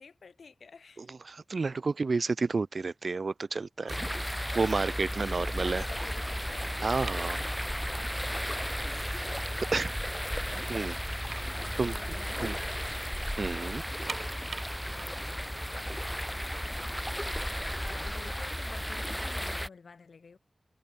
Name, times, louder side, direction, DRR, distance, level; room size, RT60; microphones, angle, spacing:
voice 1, 0.0-1.1 5.3-6.7 8.8-9.3 11.5-13.1 14.9-16.0 17.5-20.4, left 5 dB, 80° left, 3.5 m, -51 dB
voice 2, 1.0-5.8 6.8-7.4 8.9-9.1 9.7-10.0 10.7-11.0 11.8-11.9 12.4-12.6 13.4-13.8, right 4 dB, 65° right, 0.5 m, -31 dB
sound 1, 3.8-4.3 4.5-4.8 5.3-5.4 5.7-7.9 8.2-8.3 8.9-9.0 9.4-10.1 10.5-10.6 10.8-12.8 13.1-13.2 13.8-16.7 17.4-19.2, right 5 dB, 85° right, 0.9 m, -45 dB
sound 2, 3.9-19.7, equal, 5° left, 0.4 m, -34 dB
wide cardioid pair, 60°, 0 cm